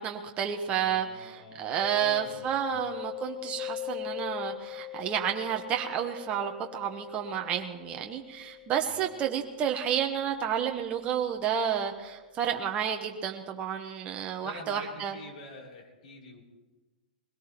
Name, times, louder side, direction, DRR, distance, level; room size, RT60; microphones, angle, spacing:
voice 1, 0.0-15.2, right 9 dB, 30° right, 3 dB, 1.1 m, -31 dB
voice 2, 0.7-2.4 2.7-2.8 8.9-9.1 14.4-16.4, left 3 dB, 70° left, 0 dB, 3.3 m, -47 dB
Mallet percussion, 1.8-11.4, left 13 dB, 20° left, 0.7 m, -42 dB
21.5 x 17.5 x 3.0 m, 1.2 s
hypercardioid pair, 110°, 5 cm